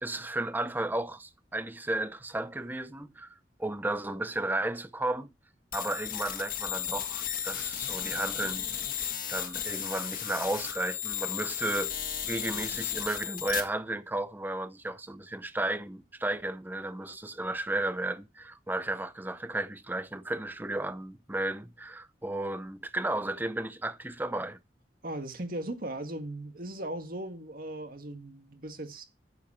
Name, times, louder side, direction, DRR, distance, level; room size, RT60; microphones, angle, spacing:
voice 1, 0.0-5.3 5.7-8.7 9.3-11.9 12.2-24.6, right 2 dB, 10° right, 0.6 m, -33 dB
sound 1, 5.7-13.6, left 10 dB, 50° left, 1.7 m, -34 dB
voice 2, 25.0-29.0, right 1 dB, 55° right, 1.8 m, -38 dB
9.5 x 7.3 x 4.3 m
head